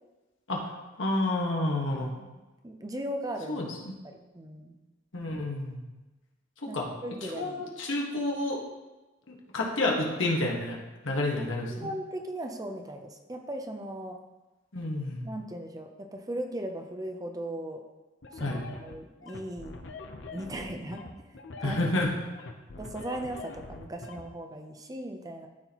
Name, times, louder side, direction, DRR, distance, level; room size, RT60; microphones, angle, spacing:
voice 1, 1.0-2.1 3.5-3.9 5.1-5.8 6.6-6.9 7.2-8.6 9.3-10.8 11.0-11.9 14.7-15.2 18.4-18.6 21.6-22.1, left 2 dB, 80° left, -2 dB, 1.5 m, -29 dB
voice 2, 2.6-3.8 4.3-4.8 6.7-6.8 7.0-7.6 11.7-14.2 15.2-17.8 18.3-19.8 20.3-21.0 21.6-21.9 22.8-25.5, right 1 dB, 20° right, 4 dB, 0.5 m, -37 dB
sound 1, 18.2-24.2, left 3 dB, 65° left, 0.7 m, -43 dB
12.5 x 4.3 x 3.0 m, 1.1 s
head